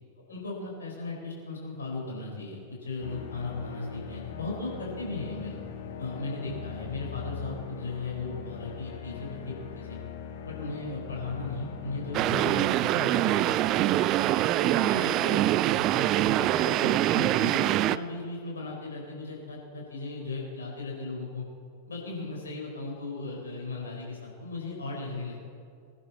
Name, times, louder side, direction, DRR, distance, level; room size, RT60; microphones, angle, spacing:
voice 1, 0.3-5.6 6.0-10.0 10.4-14.0 14.6-21.4 21.9-25.5, left 3 dB, 70° left, -2 dB, 4.5 m, -37 dB
sound 1, 3.0-12.8, left 7 dB, 55° left, 1.2 m, -41 dB
sound 2, 12.1-18.0, right 14 dB, 35° right, 0.4 m, -24 dB
21.5 x 10.5 x 4.2 m, 2.3 s
figure-of-eight pair, 90°, 0 cm